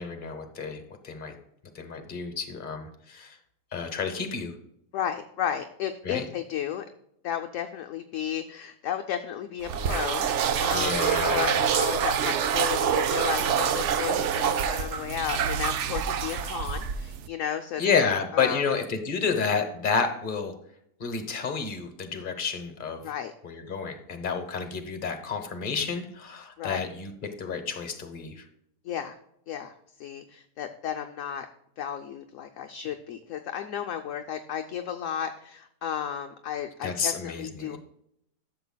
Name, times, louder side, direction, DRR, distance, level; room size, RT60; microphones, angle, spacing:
voice 1, 0.0-1.3 1.7-3.4 3.7-4.5 6.0-6.2 10.7-11.9 17.8-20.5 21.0-23.1 23.4-28.5 36.8-37.8, left 5 dB, 35° left, 6 dB, 1.1 m, -30 dB
voice 2, 4.9-6.8 7.2-18.1 18.3-18.6 23.0-23.3 26.6-26.8 28.8-29.1 29.5-31.5 31.8-37.8, left 9 dB, 65° left, 5 dB, 0.8 m, -33 dB
sound 1, 9.6-17.3, right 8 dB, 65° right, 0.7 m, -26 dB
12.0 x 6.9 x 2.2 m, 0.76 s
omnidirectional pair, 1.8 m